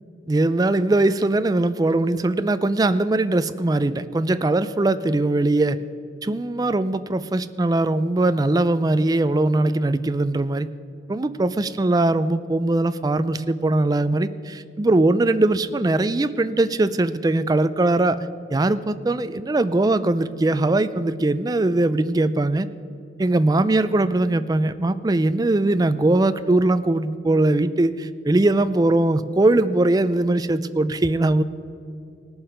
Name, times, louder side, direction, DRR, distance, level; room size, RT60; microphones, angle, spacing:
voice 1, 0.3-5.8 6.2-10.7 11.1-22.7 23.2-31.4, right 2 dB, 20° right, 13 dB, 0.4 m, -21 dB
18.5 x 7.1 x 5.1 m, 2.4 s
head